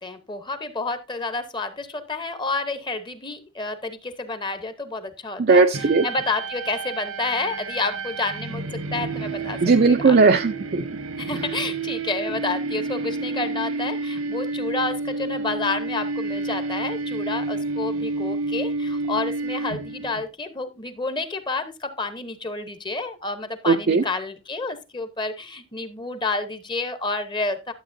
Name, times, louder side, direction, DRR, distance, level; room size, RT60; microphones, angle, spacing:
voice 1, 0.0-5.6 6.0-9.6 9.9-10.2 11.2-27.7, left 3 dB, 20° left, 0.9 m, -29 dB
voice 2, 5.4-6.0 9.6-10.8 23.7-24.0, right 4 dB, 45° right, 0.4 m, -17 dB
sound 1, 5.7-20.2, right 3 dB, 85° right, 1.3 m, -30 dB
12.0 x 7.8 x 2.6 m
head